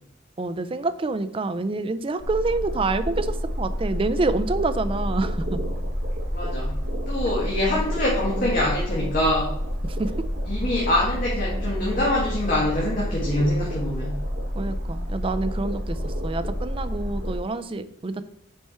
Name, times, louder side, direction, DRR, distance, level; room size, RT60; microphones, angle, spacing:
voice 1, 0.4-5.6 10.0-10.1 14.6-18.2, right 3 dB, 30° right, 11 dB, 0.4 m, -27 dB
sound 1, 2.2-17.4, equal, 45° right, 1.5 m, -29 dB
voice 2, 6.3-6.7 7.1-9.6 10.4-14.2, left 1 dB, 45° left, -4 dB, 1.6 m, -24 dB
6.9 x 4.4 x 4.3 m, 0.74 s
head